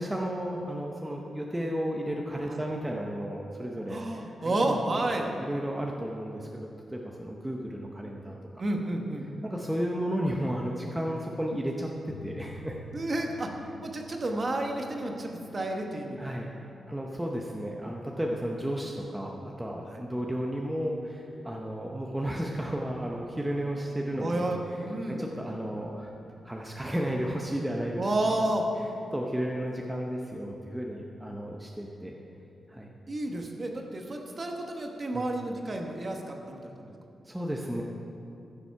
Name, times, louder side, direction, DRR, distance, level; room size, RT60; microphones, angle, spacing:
voice 1, 0.0-8.4 9.4-12.8 16.2-16.5 16.9-26.1 26.4-28.3 29.1-32.2 32.7-33.0 35.1-35.3 37.2-37.8, equal, 5° right, -1 dB, 0.7 m, -33 dB
voice 2, 3.9-5.3 8.6-9.3 12.9-13.5 13.8-16.3 19.9-20.0 24.2-25.3 28.0-28.7 33.1-36.9, right 1 dB, 30° right, 2 dB, 1.1 m, -31 dB
sound 1, 12.1-19.0, left 2 dB, 90° left, 0.5 m, -51 dB
15.0 x 7.0 x 5.7 m, 2.8 s
wide cardioid pair, 170°, 0 cm